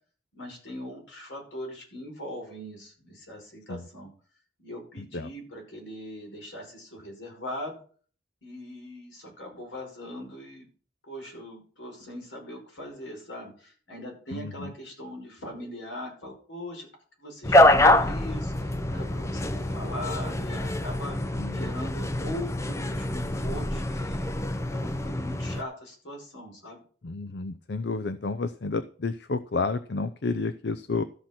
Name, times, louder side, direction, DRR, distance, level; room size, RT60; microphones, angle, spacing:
voice 1, 0.3-4.1 4.6-7.8 8.4-10.7 11.0-16.9 17.2-24.3 24.7-26.8, left 1 dB, 80° left, 1 dB, 5.5 m, -40 dB
voice 2, 5.0-5.3 14.3-14.7 21.4-21.7 27.0-31.0, left 3 dB, 60° left, 12 dB, 0.6 m, -31 dB
sound 1, 17.4-25.6, left 1 dB, 15° left, 0.6 m, -25 dB
13.5 x 5.8 x 6.0 m, 0.42 s
head